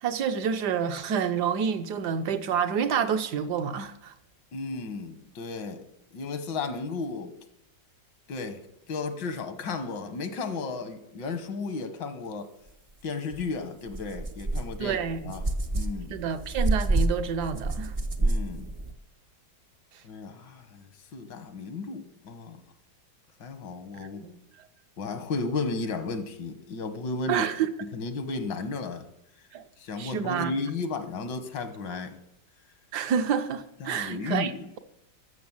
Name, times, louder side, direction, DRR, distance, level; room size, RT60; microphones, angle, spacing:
voice 1, 0.0-4.1 14.8-15.3 16.1-17.9 24.0-24.4 27.3-27.7 29.5-29.6 30.0-30.5 32.9-34.5, right 7 dB, 70° right, 1.3 m, -28 dB
voice 2, 4.5-5.8 6.1-7.3 8.3-8.6 8.9-12.5 13.0-15.4 15.7-16.1 18.2-18.7 20.0-22.6 23.4-24.2 25.0-27.5 27.8-29.1 29.8-32.1 33.8-34.7, left 4 dB, 80° left, 1.9 m, -34 dB
sound 1, 13.3-13.4 13.9-18.9, right 2 dB, 50° right, 0.4 m, -28 dB
13.5 x 6.5 x 7.2 m
omnidirectional pair, 1.9 m